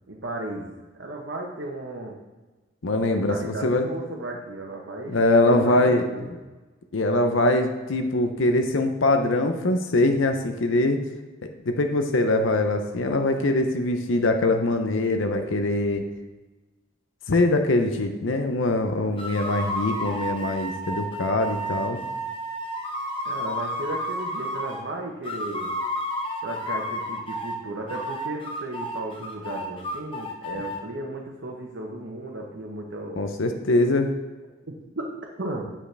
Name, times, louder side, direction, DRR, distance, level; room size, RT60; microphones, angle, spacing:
voice 1, 0.1-0.6 1.0-2.2 3.0-6.3 23.2-25.7 26.4-33.2 34.7-35.1 35.4-35.6, right 2 dB, 70° right, -1 dB, 1.0 m, -35 dB
voice 2, 2.8-3.9 5.1-6.0 6.9-11.0 11.4-16.0 17.3-22.0 33.2-34.1, left 2 dB, 80° left, 5 dB, 0.7 m, -23 dB
sound 1, 19.2-24.8 25.2-27.6 27.9-30.8, equal, 25° left, 0.9 m, -31 dB
9.0 x 7.4 x 3.4 m, 1.2 s
head